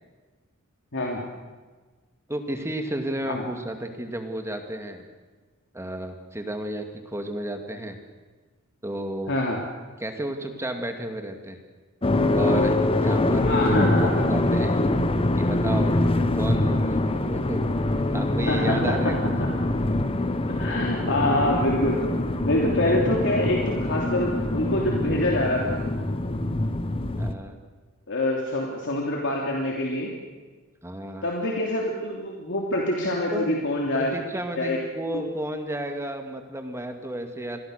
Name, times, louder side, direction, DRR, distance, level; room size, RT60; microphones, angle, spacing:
voice 1, 0.9-1.2 3.2-3.4 9.3-9.6 13.4-14.3 18.5-18.8 19.4-19.5 20.6-22.0 22.4-25.8 28.1-30.1 31.2-34.1 34.6-34.8, left 1 dB, 60° left, -1 dB, 3.2 m, -25 dB
voice 2, 2.3-5.0 5.7-8.0 8.8-9.3 10.0-11.6 12.4-14.8 15.3-17.6 17.9-19.2 22.8-23.0 27.2-27.6 30.8-31.3 33.3-33.5 33.9-37.6, right 1 dB, 15° right, 5 dB, 2.2 m, -32 dB
sound 1, 12.0-27.3, left 2 dB, 25° left, 1.2 m, -24 dB
27.5 x 21.5 x 6.7 m, 1.3 s
head